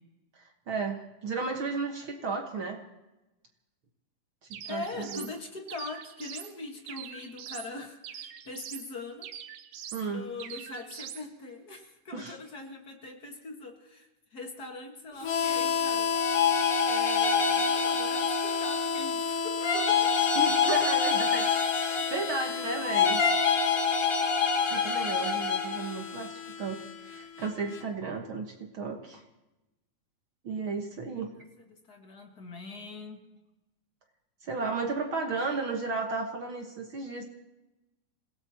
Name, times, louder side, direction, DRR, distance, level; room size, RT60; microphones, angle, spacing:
voice 1, 0.3-2.8 4.5-5.3 9.9-10.2 12.1-12.4 20.4-23.2 24.7-29.2 30.4-31.3 34.4-37.2, right 4 dB, 60° right, 2 dB, 1.3 m, -34 dB
sound 1, 4.5-5.3 5.7-6.5 6.9-7.7 8.0-8.9 9.2-10.1 10.4-11.2, right 10 dB, 90° right, 3.0 m, -43 dB
voice 2, 4.7-9.3 10.1-20.2 31.6-33.2, left 3 dB, 45° left, 2 dB, 1.3 m, -42 dB
Harmonica, 15.2-27.8, left 6 dB, 60° left, 1.7 m, -32 dB
sound 2, 16.1-19.0 19.6-22.4 22.9-25.9, left 5 dB, 90° left, 0.7 m, -27 dB
27.5 x 17.0 x 2.9 m, 1.0 s
omnidirectional pair, 4.2 m